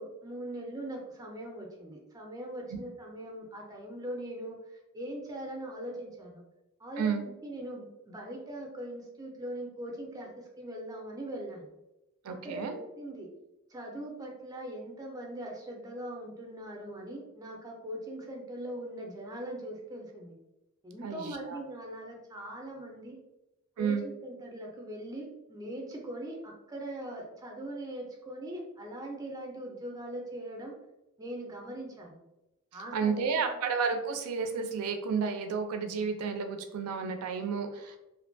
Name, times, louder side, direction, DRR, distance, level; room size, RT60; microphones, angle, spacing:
voice 1, 0.0-6.4 6.8-11.7 12.3-13.3 13.7-20.4 20.8-23.2 23.8-30.7 31.2-32.2 32.7-33.4, right 1 dB, 15° right, 0 dB, 0.4 m, -41 dB
voice 2, 12.2-12.7 21.0-21.6 23.8-24.0 32.9-38.0, right 5 dB, 85° right, 6 dB, 0.4 m, -31 dB
2.5 x 2.1 x 2.5 m, 0.95 s
head